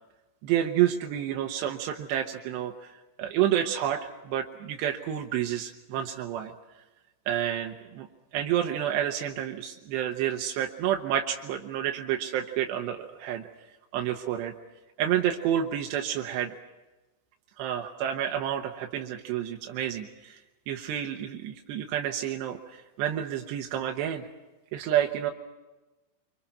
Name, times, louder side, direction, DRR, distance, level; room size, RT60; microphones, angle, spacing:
voice 1, 0.4-2.9 3.2-6.5 7.3-8.1 8.3-13.4 13.9-14.5 15.0-16.6 17.6-20.4 20.7-24.3 24.7-25.3, right 10 dB, 85° right, 3 dB, 3.4 m, -29 dB
26.5 x 25.5 x 5.9 m, 1.1 s
omnidirectional pair, 4.9 m